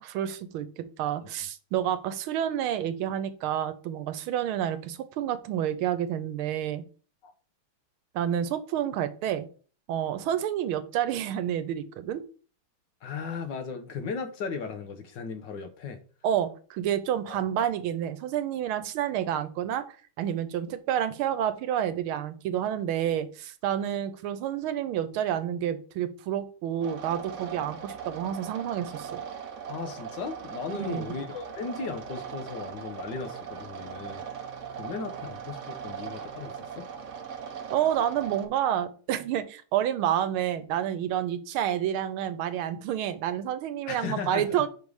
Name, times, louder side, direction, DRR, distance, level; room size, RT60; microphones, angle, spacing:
voice 1, 0.0-6.8 8.1-9.5 9.9-12.2 16.2-19.8 20.2-29.2 30.7-31.1 37.7-44.7, right 10 dB, 90° right, 12 dB, 1.5 m, -29 dB
voice 2, 13.0-16.0 17.3-17.4 29.7-34.2 34.7-36.8 43.9-44.6, left 5 dB, 65° left, 7 dB, 1.5 m, -36 dB
sound 1, 26.8-38.5, right 7 dB, 75° right, 0.7 m, -39 dB
5.4 x 5.0 x 4.7 m, 0.40 s
omnidirectional pair, 2.3 m